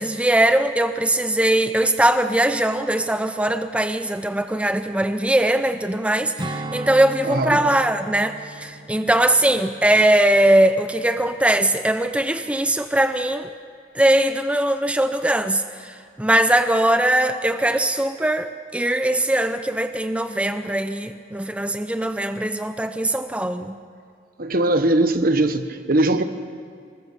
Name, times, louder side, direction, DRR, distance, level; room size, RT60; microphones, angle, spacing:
voice 1, 0.0-13.5 13.9-23.8, right 1 dB, 5° right, 0.6 m, -20 dB
Strum, 6.4-11.1 11.5-11.7, right 2 dB, 25° right, 1.0 m, -37 dB
voice 2, 7.3-7.6 24.4-26.2, right 2 dB, 55° right, 1.2 m, -20 dB
25.5 x 20.5 x 6.8 m
head